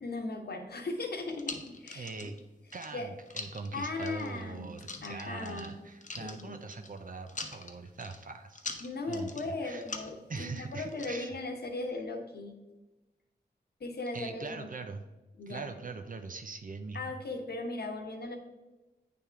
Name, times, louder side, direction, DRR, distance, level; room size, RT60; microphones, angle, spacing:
voice 1, 0.0-2.3 2.9-3.1 3.7-4.7 5.0-5.7 6.2-6.6 8.8-12.6 13.8-14.7 15.4-15.6 16.9-18.4, left 2 dB, 60° left, 4 dB, 1.1 m, -38 dB
sound 1, 1.0-2.4 2.7-3.7 4.0-4.4 4.8-5.7 6.0-7.0 7.3-8.2 8.5-9.5 9.8-11.1, left 3 dB, 45° left, 0.9 m, -42 dB
voice 2, 1.9-2.4 2.7-8.7 9.1-9.9 10.3-11.3 14.1-15.0 15.5-17.2, right 4 dB, 50° right, 7 dB, 0.6 m, -42 dB
8.4 x 3.5 x 4.5 m, 1.1 s
cardioid pair, 40°, 18 cm